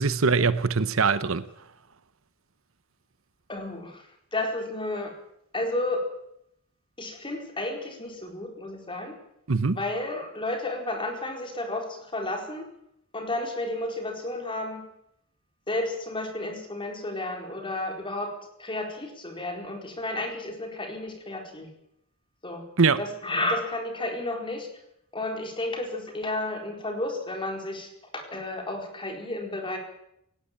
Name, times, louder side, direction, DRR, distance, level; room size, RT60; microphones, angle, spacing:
voice 1, 0.0-1.4 9.5-9.8 22.8-23.0, right 4 dB, 65° right, 0.9 m, -22 dB
voice 2, 3.5-4.0 4.3-5.1 5.5-6.1 7.0-9.2 9.8-12.7 13.1-14.9 15.7-18.3 18.6-21.7 22.4-22.6 23.0-24.7 25.1-29.8, left 2 dB, 25° left, 4.4 m, -32 dB
18.5 x 17.0 x 8.7 m
head